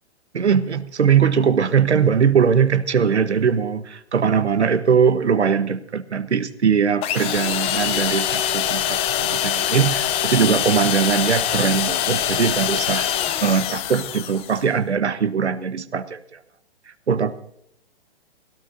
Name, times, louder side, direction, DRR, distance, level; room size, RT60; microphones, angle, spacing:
voice 1, 0.3-13.1 13.4-16.4 16.9-17.3, right 7 dB, 85° right, 12 dB, 1.1 m, -20 dB
sound 1, 7.0-14.6, left 10 dB, 20° left, 0.6 m, -24 dB
20.5 x 17.0 x 2.6 m, 0.71 s
hypercardioid pair, 130°, 33 cm